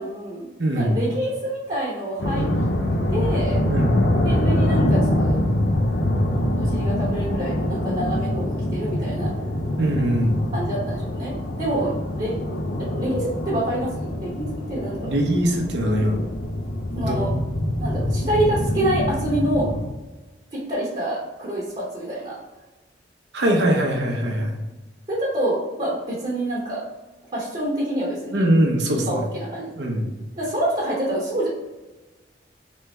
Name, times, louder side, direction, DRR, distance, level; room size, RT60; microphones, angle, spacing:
voice 1, 0.0-0.5 0.7-2.5 3.1-3.6 4.2-5.4 6.5-9.3 10.5-12.3 13.0-15.1 16.9-17.3 17.8-19.7 20.5-22.4 24.3-24.4 25.1-26.8 27.3-28.4 29.0-29.7 30.4-31.5, right 1 dB, 35° right, -6 dB, 1.0 m, -27 dB
voice 2, 0.6-1.0 3.6-4.1 9.8-10.4 15.1-16.2 17.0-17.4 23.3-24.6 28.3-29.3 29.7-30.1, right 1 dB, 75° right, 1 dB, 0.8 m, -22 dB
sound 1, 2.2-19.9, left 1 dB, 70° left, 0.6 m, -24 dB
3.4 x 3.2 x 3.2 m, 1.2 s
head